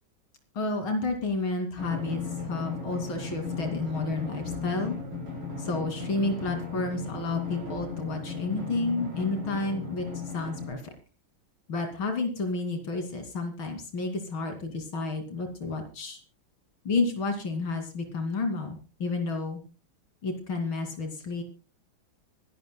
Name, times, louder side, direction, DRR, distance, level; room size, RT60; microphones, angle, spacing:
voice 1, 0.5-4.9 5.6-10.1 10.3-10.9 11.7-16.2 16.8-19.6 20.2-21.4, left 3 dB, 75° left, 5 dB, 3.4 m, -31 dB
Drum, 1.8-10.7, left 5 dB, 85° right, 6.3 m, -35 dB
24.5 x 11.5 x 2.2 m, 0.34 s
omnidirectional pair, 2.2 m